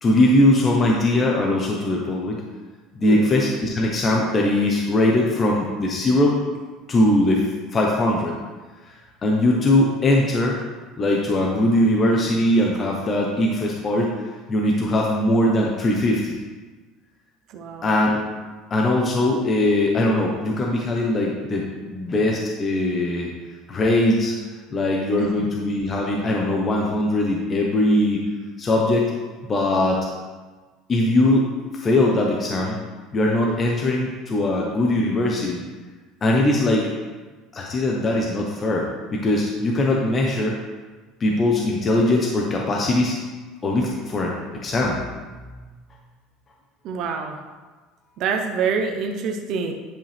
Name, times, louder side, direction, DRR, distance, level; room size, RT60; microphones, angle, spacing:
voice 1, 0.0-2.4 2.9-6.4 6.9-8.4 8.8-8.9 9.2-10.6 11.0-14.2 14.5-16.4 17.8-18.3 18.7-23.3 23.7-24.3 24.7-28.2 28.6-29.1 29.4-30.0 30.9-31.5 31.7-32.8 33.1-35.6 36.2-36.9 37.5-40.6 41.2-43.1 43.6-44.4 44.6-45.0, left 1 dB, 25° left, -1 dB, 1.0 m, -20 dB
voice 2, 17.5-17.9 25.4-25.5 46.8-47.4 48.2-49.7, right 5 dB, 55° right, 3 dB, 0.8 m, -26 dB
10.5 x 5.4 x 3.5 m, 1.3 s
cardioid pair, 135°, 0 cm